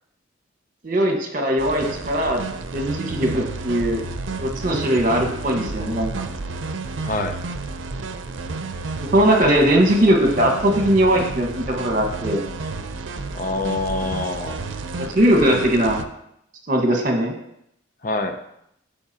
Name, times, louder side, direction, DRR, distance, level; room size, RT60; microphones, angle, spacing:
voice 1, 0.8-2.4 2.7-4.0 4.4-6.1 9.1-12.4 15.0-16.0 16.7-17.3, right 1 dB, 45° right, 2 dB, 1.4 m, -19 dB
sound 1, 1.6-16.0, right 3 dB, 85° right, 0.6 m, -31 dB
voice 2, 7.0-7.4 13.3-14.6 18.0-18.4, left 2 dB, 45° left, 8 dB, 0.6 m, -25 dB
13.5 x 5.0 x 2.9 m, 0.76 s
head